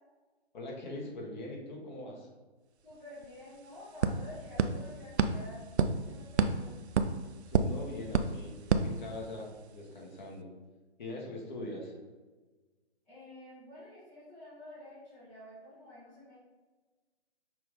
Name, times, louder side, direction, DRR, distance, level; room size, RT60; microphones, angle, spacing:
voice 1, 0.5-2.3 7.5-8.6 8.8-10.5 11.0-11.9, left 2 dB, 45° left, -1 dB, 1.3 m, -42 dB
voice 2, 2.8-6.7 13.1-16.4, left 1 dB, 5° left, -12 dB, 0.4 m, -50 dB
sound 1, 2.9-3.0 3.2-9.6, right 5 dB, 85° right, 0.5 m, -32 dB
5.8 x 2.5 x 3.7 m, 1.3 s
figure-of-eight pair, 140°, 32 cm